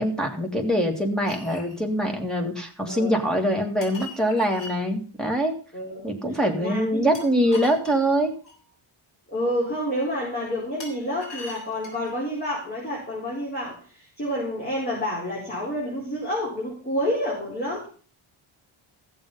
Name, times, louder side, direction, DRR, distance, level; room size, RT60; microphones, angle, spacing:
voice 1, 0.0-5.5 6.0-8.3, equal, ahead, 2 dB, 2.3 m, -24 dB
sound 1, 1.3-1.8 3.8-4.8 7.1-8.6 10.8-12.1, left 2 dB, 60° left, 6.5 m, -41 dB
voice 2, 5.7-6.0 6.6-7.2 9.3-17.9, equal, 20° left, -5 dB, 4.6 m, -29 dB
15.0 x 7.0 x 5.5 m, 0.40 s
wide cardioid pair, 160°, 48 cm